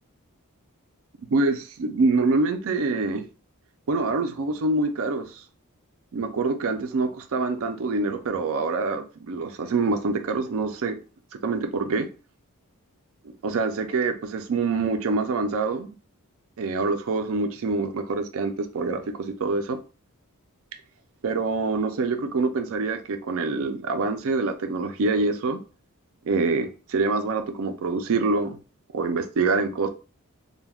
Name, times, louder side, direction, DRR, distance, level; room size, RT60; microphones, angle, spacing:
voice 1, 1.3-3.2 3.9-5.4 6.1-11.0 11.4-12.1 13.2-15.9 16.6-19.8 21.2-25.6 26.2-28.6 28.9-29.9, right 3 dB, 65° right, 0.4 m, -25 dB
2.3 x 2.2 x 3.3 m
head